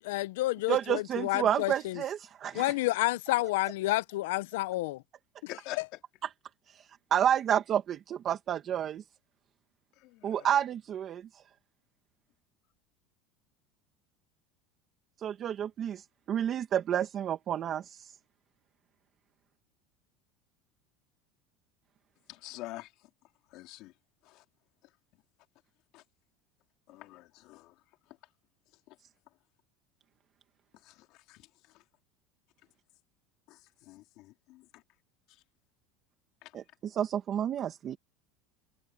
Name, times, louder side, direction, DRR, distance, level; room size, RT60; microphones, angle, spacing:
voice 1, 0.0-2.0 2.5-5.0, left 19 dB, 85° left, 0.6 m, -30 dB
voice 2, 0.7-2.7 6.7-9.0 10.2-11.4 15.2-18.2 36.5-38.0, right 10 dB, 35° right, 1.6 m, -30 dB
voice 3, 5.5-6.0 9.9-10.6 22.3-23.1 23.5-23.9 24.2-24.4 25.9-26.0 26.9-27.8 28.9-29.0 30.8-31.8 33.5-34.8 35.3-35.4 36.4-36.6, left 18 dB, 55° left, 3.5 m, -47 dB
supercardioid pair, 140°, 0 cm